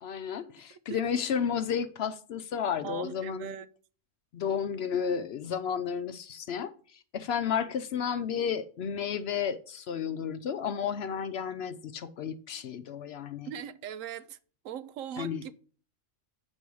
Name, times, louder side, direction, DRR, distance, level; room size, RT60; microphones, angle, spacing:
voice 1, 0.0-3.6 4.3-13.5 15.2-15.4, left 7 dB, 65° left, 0.7 m, -32 dB
voice 2, 0.7-1.0 2.8-3.7 13.5-14.4 14.6-15.5, right 9 dB, 85° right, 1.0 m, -40 dB
8.4 x 5.3 x 4.6 m
omnidirectional pair, 1.3 m